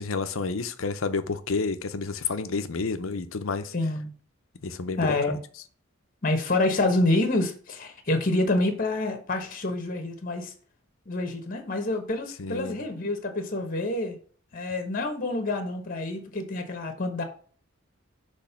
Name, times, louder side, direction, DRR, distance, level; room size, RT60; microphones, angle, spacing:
voice 1, 0.0-3.7 4.6-5.4 12.4-12.8, left 4 dB, 80° left, 0.7 m, -30 dB
voice 2, 3.7-4.1 5.0-5.4 6.2-10.5 11.1-14.2 14.5-17.2, left 2 dB, 45° left, 1.2 m, -27 dB
6.3 x 3.2 x 5.8 m
head